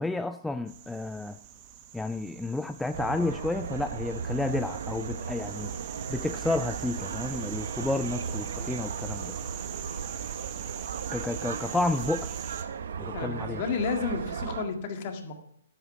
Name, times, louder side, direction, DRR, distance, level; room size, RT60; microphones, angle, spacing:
voice 1, 0.0-1.4 1.9-5.7 6.1-9.4 11.1-12.3 13.0-13.6, left 2 dB, 5° left, 9 dB, 0.3 m, -31 dB
sound 1, 0.7-12.6, right 9 dB, 35° right, 1.2 m, -42 dB
sound 2, 2.9-14.6, right 6 dB, 70° right, 0.8 m, -36 dB
voice 2, 13.1-15.3, left 5 dB, 45° left, 5 dB, 1.9 m, -31 dB
10.0 x 8.3 x 5.8 m, 0.71 s
hypercardioid pair, 140°, 0 cm